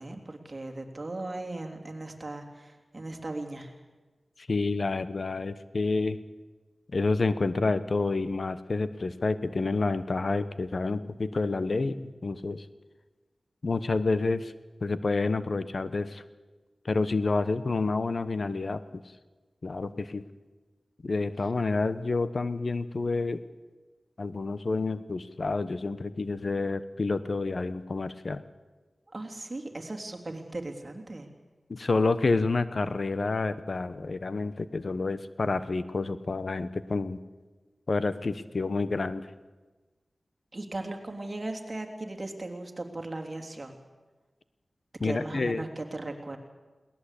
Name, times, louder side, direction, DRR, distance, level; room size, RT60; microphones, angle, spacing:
voice 1, 0.0-3.7 29.1-31.3 40.5-43.8 45.0-46.4, right 2 dB, 40° right, 3 dB, 3.3 m, -37 dB
voice 2, 4.4-6.2 6.9-12.6 13.6-14.5 14.8-16.2 16.8-19.0 19.6-20.2 21.0-23.4 24.2-28.4 31.7-37.2 37.9-39.3 45.0-45.6, left 3 dB, 60° left, 13 dB, 1.1 m, -29 dB
22.0 x 18.5 x 8.5 m, 1.2 s
cardioid pair, 50°, 0 cm